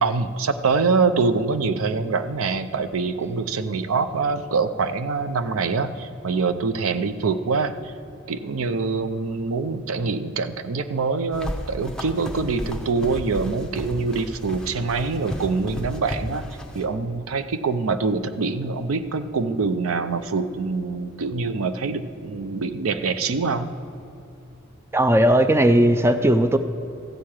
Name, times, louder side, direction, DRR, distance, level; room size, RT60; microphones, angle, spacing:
voice 1, 0.0-7.9 8.3-16.4 16.7-23.7, right 4 dB, 85° right, 11 dB, 0.6 m, -24 dB
sound 1, 11.3-16.8, left 1 dB, 5° left, 0.8 m, -34 dB
voice 2, 24.9-26.6, right 1 dB, 10° right, 9 dB, 0.4 m, -17 dB
14.0 x 4.7 x 8.7 m, 2.8 s
head